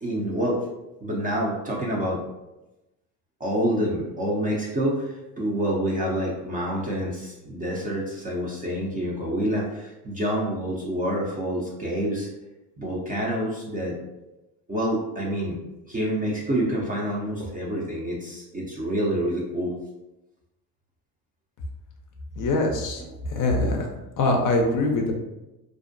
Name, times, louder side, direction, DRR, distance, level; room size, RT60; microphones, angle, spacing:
voice 1, 0.0-0.7 1.0-2.2 3.4-12.3 12.8-14.0 14.7-15.6 15.9-19.7, equal, 20° right, -3 dB, 0.4 m, -27 dB
voice 2, 22.4-23.9 24.2-25.1, left 2 dB, 40° left, 2 dB, 0.5 m, -23 dB
2.5 x 2.1 x 2.5 m, 0.99 s
supercardioid pair, 85°, 50 cm